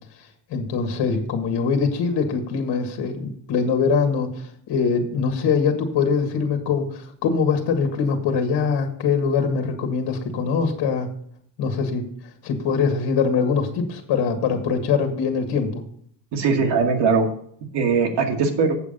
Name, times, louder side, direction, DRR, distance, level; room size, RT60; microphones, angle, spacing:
voice 1, 0.5-11.1 11.6-12.0 12.4-15.8, left 5 dB, 65° left, 5 dB, 1.8 m, -23 dB
voice 2, 16.3-17.3 17.7-18.7, right 5 dB, 70° right, 4 dB, 2.0 m, -20 dB
8.1 x 7.3 x 5.3 m, 0.63 s
cardioid pair, 140°, 43 cm